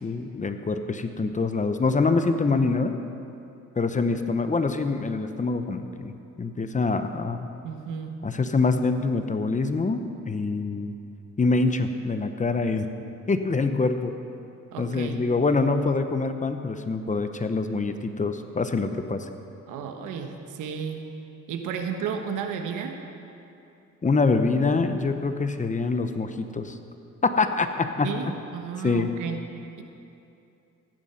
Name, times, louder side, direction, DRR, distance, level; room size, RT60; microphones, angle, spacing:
voice 1, 0.0-2.9 3.8-6.1 6.4-7.5 8.2-10.9 11.4-12.9 13.3-14.1 14.8-19.3 24.0-26.8 27.2-28.2 28.8-29.1, left 3 dB, 25° left, 8 dB, 0.9 m, -25 dB
voice 2, 7.6-8.2 14.7-15.3 19.7-21.0 21.5-23.0 28.0-29.4, right 7 dB, 85° right, 5 dB, 1.3 m, -33 dB
15.0 x 10.5 x 5.9 m, 2.7 s
cardioid pair, 90°, 30 cm